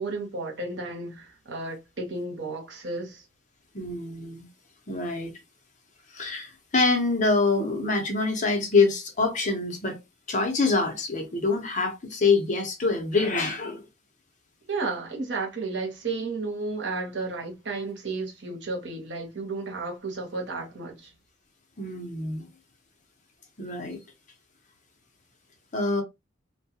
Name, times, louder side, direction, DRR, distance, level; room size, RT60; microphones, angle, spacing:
voice 1, 0.0-3.3 14.7-21.1, right 3 dB, 80° right, 1.0 m, -33 dB
voice 2, 3.7-4.5 4.9-5.3 6.1-10.0 10.3-13.8 21.8-22.5 23.6-24.0 25.7-26.0, left 3 dB, 45° left, 0.7 m, -25 dB
2.3 x 2.2 x 2.7 m
head